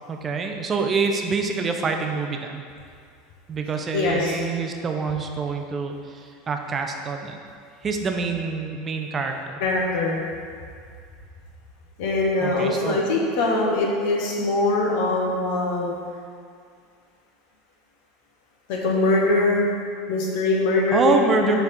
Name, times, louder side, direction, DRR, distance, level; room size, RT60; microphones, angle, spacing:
voice 1, 0.1-2.6 3.5-7.4 7.8-9.6 12.4-13.0 20.9-21.6, right 4 dB, 30° right, 4 dB, 0.6 m, -26 dB
voice 2, 3.9-4.3 9.6-10.2 12.0-15.9 18.7-19.7 20.1-21.6, left 2 dB, 60° left, -2 dB, 1.1 m, -22 dB
6.7 x 3.5 x 4.1 m, 2.2 s
hypercardioid pair, 80°, 0 cm